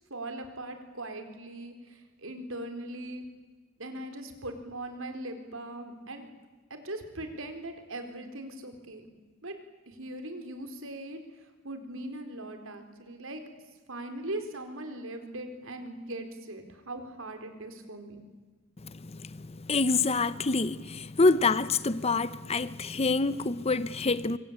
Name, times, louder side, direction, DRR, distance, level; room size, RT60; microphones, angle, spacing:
voice 1, 0.1-3.2 3.8-6.3 6.7-9.1 9.4-9.6 9.9-11.2 11.6-13.4 13.9-18.2, right 1 dB, 70° right, 4.2 m, -40 dB
voice 2, 18.8-24.4, left 3 dB, 30° left, 0.8 m, -27 dB
26.0 x 24.5 x 8.8 m
head